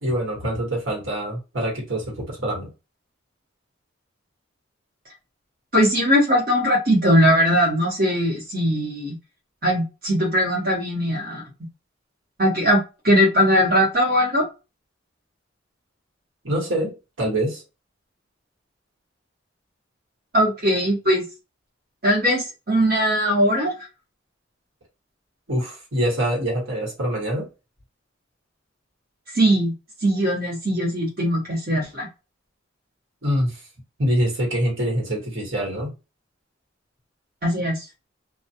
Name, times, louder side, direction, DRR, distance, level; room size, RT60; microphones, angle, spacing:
voice 1, 0.0-2.7 16.4-17.6 25.5-27.5 33.2-33.6 34.0-35.9, equal, 85° right, 1.3 m, -25 dB
voice 2, 5.7-9.2 9.6-11.4 12.4-14.5 20.3-21.2 22.0-23.7 29.3-29.7 30.0-32.1 37.4-37.8, equal, 50° right, 1.0 m, -20 dB
2.3 x 2.2 x 2.7 m
head